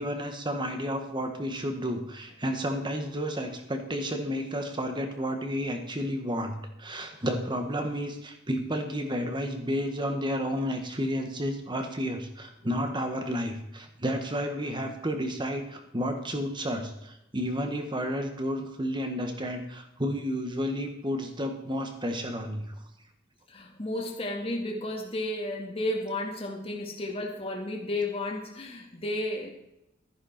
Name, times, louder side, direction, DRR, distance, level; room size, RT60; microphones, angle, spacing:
voice 1, 0.0-22.7, equal, 25° right, 5 dB, 1.6 m, -31 dB
voice 2, 23.5-29.5, left 1 dB, 30° left, 1 dB, 1.9 m, -32 dB
13.5 x 10.0 x 4.4 m, 0.85 s
head